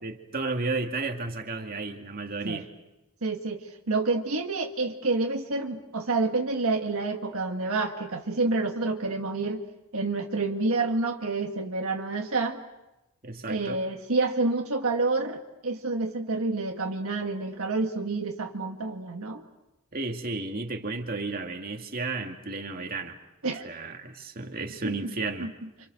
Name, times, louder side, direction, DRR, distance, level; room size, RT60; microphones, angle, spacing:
voice 1, 0.0-2.7 13.2-13.8 19.9-23.2 23.6-25.5, right 3 dB, 40° right, 3 dB, 2.3 m, -33 dB
voice 2, 3.2-9.6 9.9-12.6 13.5-19.4 23.4-23.7 24.8-24.9 25.4-25.5, right 3 dB, 70° right, 2 dB, 1.7 m, -28 dB
29.5 x 27.0 x 6.6 m, 0.96 s
head